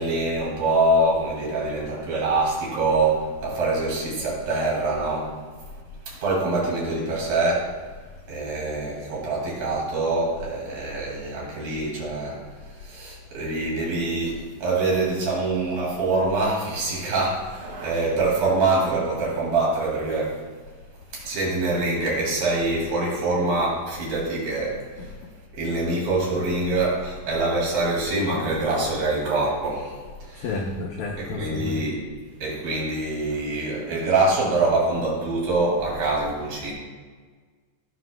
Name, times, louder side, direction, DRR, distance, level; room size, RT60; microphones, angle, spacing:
voice 1, 0.0-5.4 6.1-7.7 8.3-12.4 12.7-20.4 21.1-25.2 25.5-30.6 31.2-32.1 32.4-36.7, right 2 dB, 75° right, -3 dB, 4.1 m, -25 dB
voice 2, 30.4-31.8, left 3 dB, 85° left, 0 dB, 1.6 m, -31 dB
17.0 x 6.1 x 2.2 m, 1.5 s
omnidirectional pair, 4.1 m